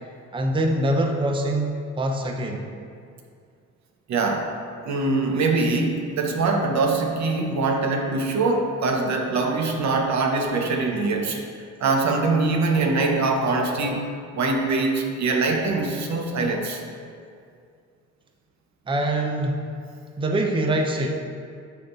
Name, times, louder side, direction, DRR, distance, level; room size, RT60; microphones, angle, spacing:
voice 1, 0.3-2.7 18.9-19.6 20.2-21.1, right 1 dB, 15° right, 3 dB, 0.6 m, -24 dB
voice 2, 4.1-4.5 4.8-11.4 11.8-14.0 14.3-16.8, right 3 dB, 65° right, 2 dB, 1.0 m, -23 dB
10.5 x 3.8 x 3.9 m, 2.3 s
cardioid pair, 90°, 30 cm